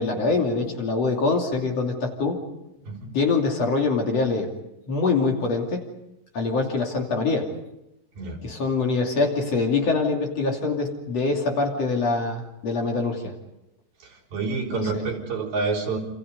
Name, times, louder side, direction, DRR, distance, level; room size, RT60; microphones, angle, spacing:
voice 1, 0.0-2.4 3.1-4.5 4.9-5.8 6.3-7.5 8.4-13.3 14.7-15.0, left 3 dB, 45° left, 1 dB, 3.8 m, -24 dB
voice 2, 14.0-16.0, right 4 dB, 85° right, -1 dB, 5.8 m, -28 dB
28.0 x 28.0 x 5.4 m, 0.90 s
omnidirectional pair, 4.1 m